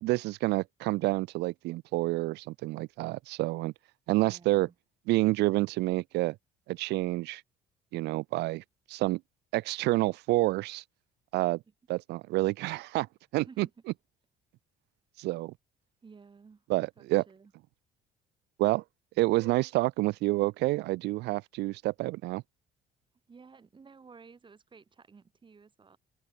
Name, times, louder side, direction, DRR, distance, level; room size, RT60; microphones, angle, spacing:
voice 1, 0.0-3.7 4.1-4.7 5.1-6.4 6.7-7.4 7.9-8.6 8.9-9.2 9.5-10.8 11.3-11.6 11.9-13.1 13.3-13.7 15.2-15.5 16.7-17.2 18.6-18.8 19.2-22.4, right 20 dB, 85° right, 1.0 m, -28 dB
voice 2, 4.2-4.7 13.4-13.7 16.0-16.7 17.0-17.5 23.3-26.0, right 5 dB, 30° right, 5.2 m, -54 dB
open air
cardioid pair, 110°, 17 cm